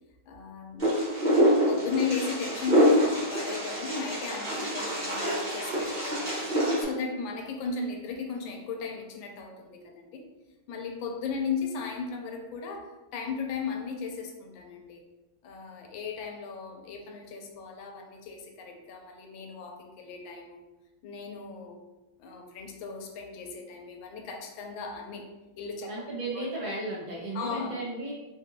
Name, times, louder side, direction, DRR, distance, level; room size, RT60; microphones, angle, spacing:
voice 1, 0.3-0.9 1.7-10.2 10.7-15.0 15.4-20.7 21.0-21.8 22.2-26.0 26.3-26.5 27.3-27.8, left 5 dB, 80° left, 2 dB, 1.3 m, -36 dB
Wind, 0.8-6.8, equal, 30° right, 0.8 m, -26 dB
voice 2, 25.9-28.1, right 2 dB, 60° right, -6 dB, 1.3 m, -34 dB
3.3 x 2.5 x 2.7 m, 1.1 s
omnidirectional pair, 2.2 m